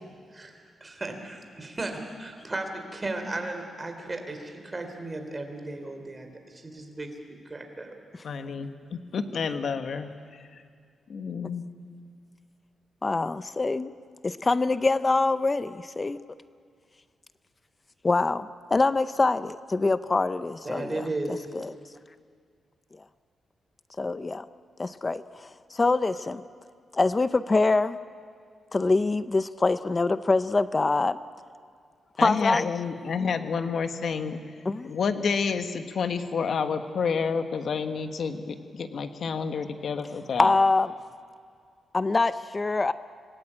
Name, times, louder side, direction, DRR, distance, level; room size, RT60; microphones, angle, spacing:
voice 1, 0.3-7.9 20.6-21.4, right 2 dB, 25° right, 5 dB, 3.6 m, -35 dB
voice 2, 8.2-10.1 10.5-10.6 11.1-11.6 32.2-34.4 34.8-40.5, left 5 dB, 60° left, 8 dB, 1.5 m, -29 dB
voice 3, 13.0-13.9 14.2-16.2 18.0-21.7 24.0-24.5 24.8-26.4 26.9-28.0 28.7-31.2 32.2-32.7 34.6-35.0 40.4-40.9 41.9-42.9, left 3 dB, 25° left, 14 dB, 0.6 m, -24 dB
27.0 x 18.5 x 8.8 m, 2.2 s
cardioid pair, 115°, 0 cm